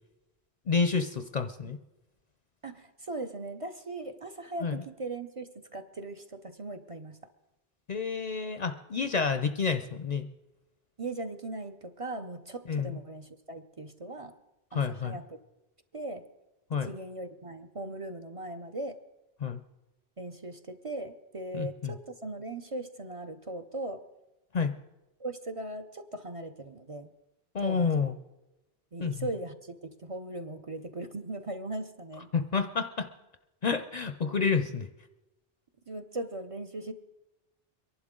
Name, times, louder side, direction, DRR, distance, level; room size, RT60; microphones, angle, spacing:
voice 1, 0.7-1.8 4.6-4.8 7.9-10.3 12.7-13.0 14.7-15.2 16.7-16.9 19.4-19.6 21.5-21.9 24.5-24.8 27.5-28.2 29.0-29.1 32.3-33.1 33.6-34.9, left 5 dB, 50° left, 9 dB, 0.6 m, -29 dB
voice 2, 2.6-7.2 11.0-14.3 14.7-15.4 15.9-16.3 16.7-19.0 20.2-24.0 25.2-27.1 27.6-28.1 28.9-32.3 35.9-36.9, right 2 dB, 40° right, 6 dB, 0.6 m, -39 dB
23.5 x 11.5 x 3.7 m, 1.0 s
omnidirectional pair, 1.0 m